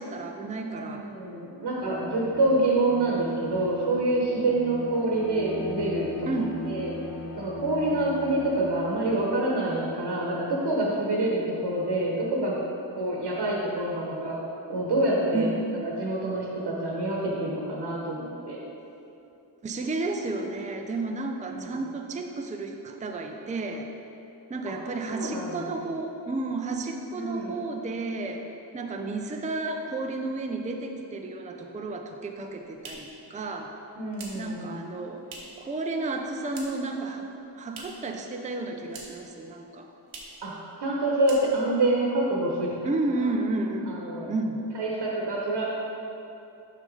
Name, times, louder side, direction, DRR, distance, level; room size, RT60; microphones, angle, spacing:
voice 1, 0.0-1.1 6.3-6.6 12.9-13.0 15.3-15.6 19.6-23.9 24.5-28.4 28.7-33.7 34.3-35.2 35.6-37.3 37.6-39.9 42.8-43.9 44.3-44.6, right 2 dB, 15° right, 3 dB, 0.5 m, -32 dB
voice 2, 0.8-6.3 6.7-6.9 7.4-12.5 12.9-14.4 14.7-15.5 15.8-18.6 21.5-21.8 24.7-24.8 25.1-25.9 27.1-27.6 34.0-34.7 40.4-40.5 40.8-42.7 43.9-44.3 44.7-45.6, right 2 dB, 60° right, -3 dB, 1.1 m, -27 dB
Bowed string instrument, 1.6-10.1, left 2 dB, 35° left, 0.7 m, -39 dB
sound 1, 32.2-35.7 36.0-37.0 37.2-38.1 38.4-39.3 39.6-39.7 40.0-40.4 40.8-40.9 41.2-41.8, right 3 dB, 85° right, 1.1 m, -46 dB
6.0 x 5.5 x 4.0 m, 2.9 s
cardioid pair, 70°, 46 cm